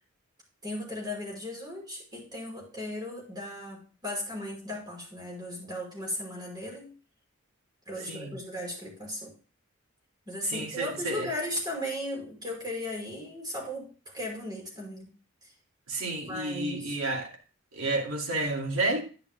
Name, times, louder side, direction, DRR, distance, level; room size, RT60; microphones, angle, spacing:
voice 1, 0.6-6.9 7.9-9.3 10.3-15.1 15.4-15.5 16.3-17.0, left 1 dB, 20° right, 5.5 m, -36 dB
voice 2, 10.5-11.3 15.9-17.3 17.7-19.0, right 2 dB, 90° right, 2.5 m, -30 dB
11.0 x 10.5 x 2.2 m
head